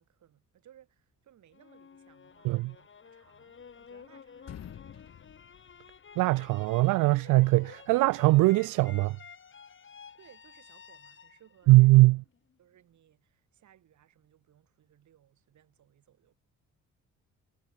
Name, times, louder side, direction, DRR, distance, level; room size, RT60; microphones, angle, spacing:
voice 1, 0.0-5.3 10.1-12.1 12.6-16.4, right 11 dB, 70° right, 7.5 m, -62 dB
sound 1, 1.5-12.5, left 6 dB, 40° left, 3.5 m, -52 dB
sound 2, 3.2-4.1 4.4-6.5, left 10 dB, 55° left, 1.8 m, -49 dB
voice 2, 6.2-9.2 11.7-12.2, right 21 dB, 90° right, 0.5 m, -21 dB
cardioid pair, 90°, 30 cm